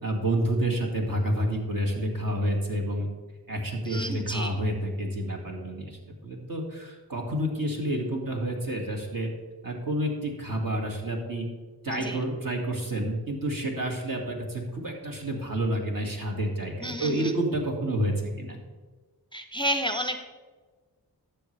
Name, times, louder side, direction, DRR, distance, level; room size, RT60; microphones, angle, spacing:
voice 1, 0.0-3.1 3.5-9.3 9.6-11.5 11.8-18.6, right 1 dB, 55° right, 0 dB, 2.2 m, -29 dB
voice 2, 3.9-4.6 11.9-12.2 16.8-17.3 19.3-20.2, equal, 10° left, 7 dB, 0.7 m, -31 dB
12.5 x 6.8 x 3.3 m, 1.4 s
cardioid pair, 45°, 40 cm